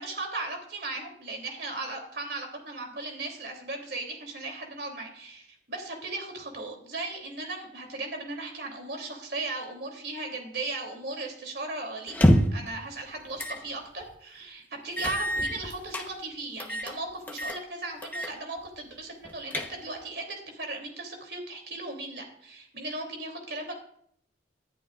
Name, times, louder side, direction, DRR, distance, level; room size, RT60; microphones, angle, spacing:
voice 1, 0.0-23.7, right 2 dB, 60° right, 2 dB, 3.1 m, -37 dB
sound 1, 12.1-12.7 13.4-13.6 14.0-14.1 15.0-16.1 16.6-17.0 17.3-17.6 18.0-18.3 18.7-18.8 19.2-20.0, equal, 10° left, 1.0 m, -26 dB
19.5 x 11.5 x 2.5 m, 0.67 s
head